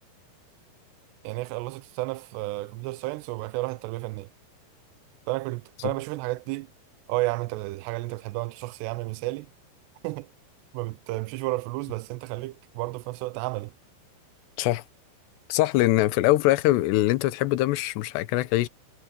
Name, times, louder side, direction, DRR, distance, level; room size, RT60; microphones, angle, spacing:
voice 1, 1.2-4.3 5.3-6.7 7.1-9.5 10.0-10.3 10.7-13.7, right 21 dB, 85° right, 2.4 m, -32 dB
voice 2, 15.5-18.7, left 16 dB, 75° left, 2.8 m, -22 dB
omnidirectional pair, 5.6 m